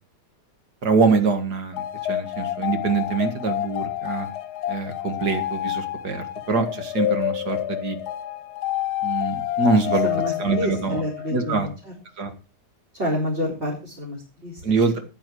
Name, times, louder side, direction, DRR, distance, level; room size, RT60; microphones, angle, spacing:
voice 1, 0.8-4.3 4.7-8.0 9.0-10.1 10.4-11.0 11.3-11.7 12.2-12.3 14.6-15.0, right 4 dB, 70° right, 7 dB, 2.4 m, -24 dB
sound 1, 1.7-11.5, left 12 dB, 70° left, 1.3 m, -28 dB
voice 2, 9.8-11.9 12.9-15.0, left 1 dB, 35° right, -3 dB, 4.6 m, -29 dB
14.5 x 9.9 x 4.7 m, 0.33 s
omnidirectional pair, 1.8 m